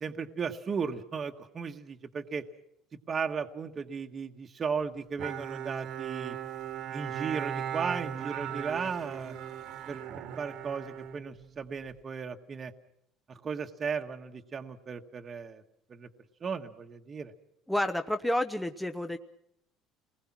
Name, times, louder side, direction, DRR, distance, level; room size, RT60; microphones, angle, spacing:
voice 1, 0.0-2.4 3.1-6.4 6.9-9.3 9.9-12.7 13.3-15.6 15.9-16.1 16.4-17.3, right 5 dB, 30° right, 4 dB, 1.4 m, -36 dB
Bowed string instrument, 5.2-11.9, right 9 dB, 65° right, 1.8 m, -38 dB
voice 2, 17.7-19.2, left 1 dB, 5° left, 7 dB, 1.0 m, -30 dB
29.5 x 20.5 x 6.0 m, 0.75 s
cardioid pair, 135°, 0 cm